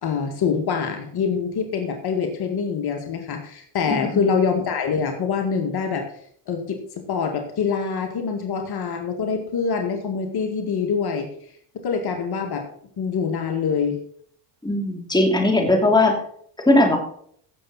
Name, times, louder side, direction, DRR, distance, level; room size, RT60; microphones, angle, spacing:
voice 1, 0.0-6.1 6.5-11.3 11.7-12.7 13.0-14.0, left 6 dB, 55° left, 3 dB, 2.1 m, -25 dB
voice 2, 3.9-4.3 14.6-16.2 16.7-17.0, left 2 dB, 10° left, 2 dB, 2.8 m, -19 dB
16.0 x 7.1 x 4.2 m, 0.63 s
supercardioid pair, 80°, 46 cm